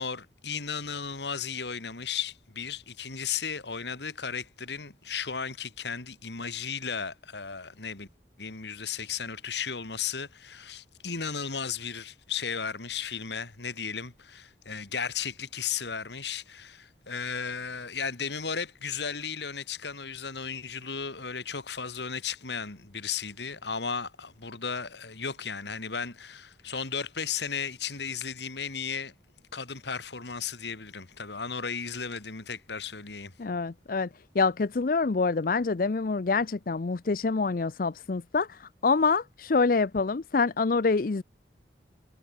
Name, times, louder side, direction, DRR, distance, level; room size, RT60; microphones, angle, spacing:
voice 1, 0.0-8.1 8.4-29.1 29.5-33.3, left 6 dB, 70° left, 2.3 m, -35 dB
voice 2, 33.4-34.1 34.3-41.2, left 4 dB, 50° left, 0.5 m, -26 dB
head